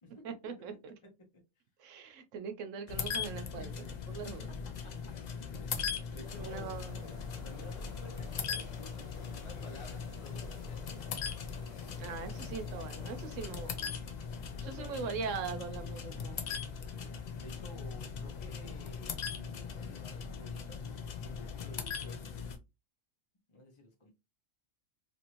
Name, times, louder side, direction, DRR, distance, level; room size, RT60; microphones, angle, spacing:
voice 1, 0.2-0.9 1.8-4.5 6.4-7.1 12.0-14.0 14.6-16.4, right 5 dB, 75° right, 1.0 m, -41 dB
sound 1, 2.9-22.6, left 6 dB, 75° left, 0.4 m, -40 dB
voice 2, 6.1-6.8 7.4-11.1 14.6-15.2 15.7-16.2 17.4-22.4 23.5-24.1, left 1 dB, 30° left, 0.6 m, -53 dB
sound 2, 6.2-13.8, left 2 dB, 5° left, 1.0 m, -54 dB
2.9 x 2.6 x 2.9 m
omnidirectional pair, 1.3 m